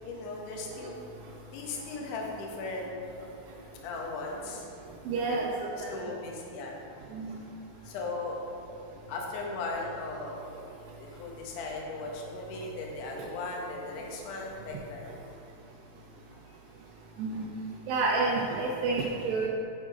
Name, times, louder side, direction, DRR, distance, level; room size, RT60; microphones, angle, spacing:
voice 1, 0.0-1.0 1.5-2.9 3.8-4.7 5.3-6.8 7.8-8.4 9.1-10.5 11.0-15.1 16.5-16.6 17.1-17.2, left 3 dB, 70° left, -1 dB, 2.1 m, -37 dB
voice 2, 5.1-5.9 7.1-7.4 13.2-13.3 17.2-17.5 17.9-19.5, right 3 dB, 85° right, -2 dB, 2.0 m, -29 dB
9.7 x 3.6 x 4.8 m, 2.7 s
omnidirectional pair, 4.7 m